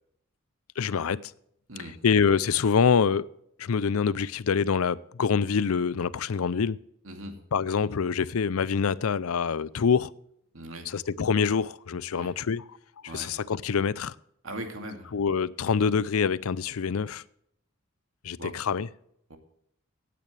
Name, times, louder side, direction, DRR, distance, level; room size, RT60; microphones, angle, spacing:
voice 1, 0.8-1.3 2.0-3.3 3.6-6.8 7.5-10.1 10.9-12.6 13.1-14.1 15.1-17.2 18.2-18.9, left 6 dB, 90° left, 0.5 m, -25 dB
voice 2, 7.0-7.4 10.5-10.9 12.1-12.3 13.1-13.4 14.4-15.1 18.4-18.5 19.3-19.4, right 1 dB, 70° right, 2.4 m, -39 dB
17.0 x 9.3 x 3.3 m
head